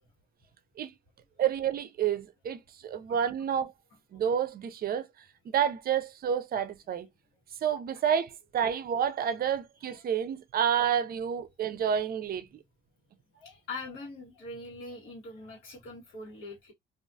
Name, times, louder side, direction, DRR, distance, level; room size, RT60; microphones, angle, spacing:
voice 1, 1.4-3.7 4.1-5.1 5.5-7.1 7.6-12.5, right 8 dB, 50° right, 0.4 m, -29 dB
voice 2, 13.3-16.7, left 3 dB, 90° left, 1.2 m, -43 dB
2.3 x 2.3 x 2.5 m
cardioid pair, 90°, 20 cm